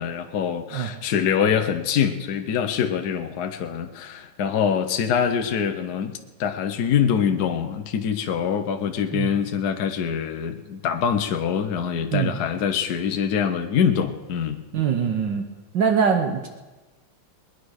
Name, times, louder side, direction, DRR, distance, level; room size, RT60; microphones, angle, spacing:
voice 1, 0.0-14.6, left 7 dB, 60° left, 6 dB, 1.3 m, -24 dB
voice 2, 14.7-15.4 15.7-16.5, right 6 dB, 65° right, 5 dB, 1.7 m, -22 dB
20.5 x 9.9 x 6.5 m, 1.2 s
omnidirectional pair, 2.2 m